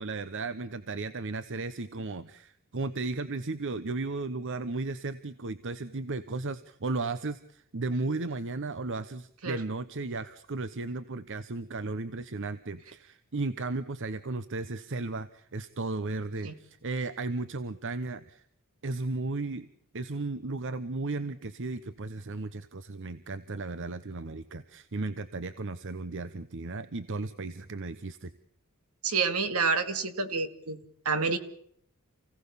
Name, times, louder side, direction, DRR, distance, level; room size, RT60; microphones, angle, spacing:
voice 1, 0.0-18.5 18.8-19.7 19.9-28.3, right 3 dB, 60° right, 13 dB, 0.9 m, -35 dB
voice 2, 29.0-31.4, right 4 dB, 75° right, 10 dB, 2.2 m, -29 dB
29.0 x 17.0 x 7.0 m, 0.68 s
head